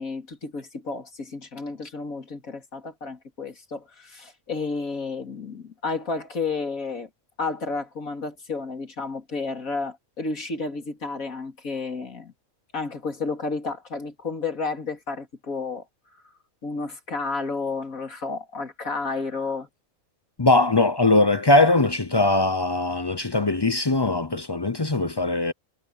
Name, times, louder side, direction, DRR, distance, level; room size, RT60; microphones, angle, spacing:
voice 1, 0.0-7.1 7.4-12.3 12.7-15.8 16.6-19.7, left 4 dB, 70° left, 3.4 m, -31 dB
voice 2, 20.4-25.5, left 2 dB, 30° left, 0.5 m, -20 dB
omnidirectional pair, 1.5 m